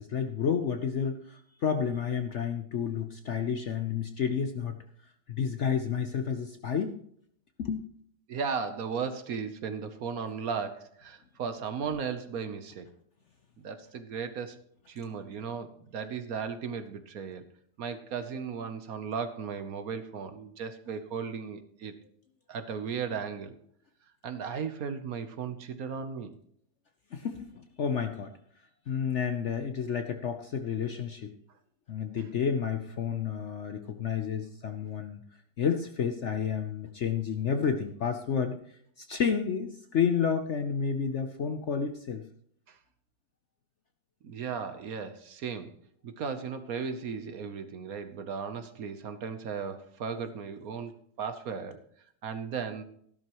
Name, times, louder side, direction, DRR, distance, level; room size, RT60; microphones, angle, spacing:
voice 1, 0.0-4.8 5.3-7.0 7.6-7.9 27.1-28.3 28.9-31.3 31.9-35.2 35.6-38.6 39.0-42.2, left 7 dB, 55° left, 7 dB, 0.8 m, -30 dB
voice 2, 8.3-12.9 13.6-14.6 14.9-17.4 17.8-21.9 22.5-23.6 24.2-26.4 42.7-42.8 44.2-45.7 46.0-51.8 52.2-52.8, right 6 dB, 60° right, 10 dB, 1.2 m, -36 dB
14.0 x 12.0 x 3.0 m, 0.65 s
omnidirectional pair, 1.9 m